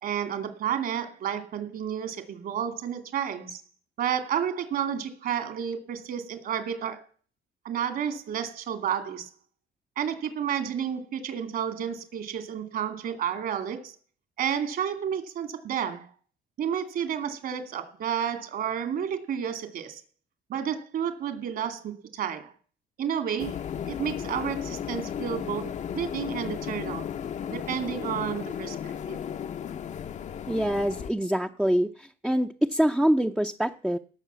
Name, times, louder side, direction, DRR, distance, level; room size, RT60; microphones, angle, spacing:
voice 1, 0.0-3.6 4.0-7.0 7.6-9.3 10.0-13.9 14.4-16.1 16.6-20.0 20.5-22.5 23.0-23.6 23.9-27.1 27.5-29.2, right 8 dB, 60° right, 9 dB, 2.6 m, -31 dB
sound 1, 23.4-31.1, left 8 dB, 45° left, 0.7 m, -35 dB
voice 2, 30.5-34.0, equal, 5° right, 4 dB, 0.6 m, -25 dB
17.5 x 6.8 x 6.9 m, 0.43 s
cardioid pair, 110°, 17 cm